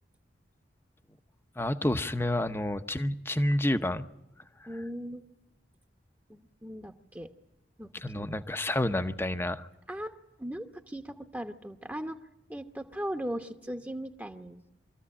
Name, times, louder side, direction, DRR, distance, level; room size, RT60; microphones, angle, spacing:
voice 1, 1.6-4.0 7.9-9.7, left 1 dB, 15° left, 10 dB, 0.8 m, -29 dB
voice 2, 4.7-5.2 6.3-7.3 7.8-8.3 9.9-12.2 12.5-14.6, equal, 10° right, 5 dB, 1.0 m, -38 dB
24.5 x 14.5 x 9.9 m, 0.95 s
head